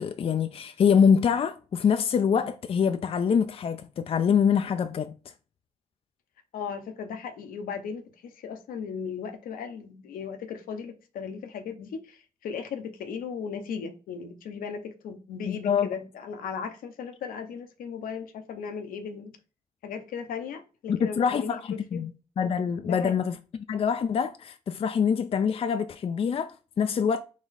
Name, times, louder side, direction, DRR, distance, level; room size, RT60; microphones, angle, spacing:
voice 1, 0.0-5.1 15.5-15.9 20.9-22.1 22.4-23.4 23.7-27.2, left 7 dB, 40° left, 0.4 m, -25 dB
voice 2, 6.5-19.3 19.8-22.1 22.8-23.1, left 6 dB, 70° left, 0.7 m, -37 dB
4.1 x 2.3 x 4.0 m
hypercardioid pair, 40°, 15 cm